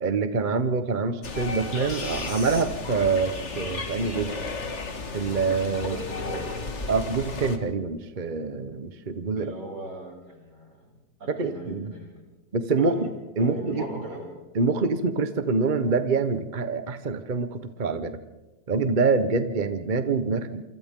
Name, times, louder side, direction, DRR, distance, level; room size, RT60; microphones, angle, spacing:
voice 1, 0.0-4.4 5.1-6.0 6.9-9.5 11.3-11.9 12.5-13.8 14.5-18.2 18.7-20.6, right 4 dB, 35° right, 10 dB, 0.9 m, -26 dB
sound 1, 1.2-7.6, left 3 dB, 40° left, 1.9 m, -34 dB
voice 2, 5.8-6.6 9.4-10.8 11.2-12.2 12.8-13.1 13.4-14.3, right 1 dB, 65° right, -2 dB, 7.8 m, -37 dB
28.0 x 26.0 x 3.7 m, 1.1 s
omnidirectional pair, 2.0 m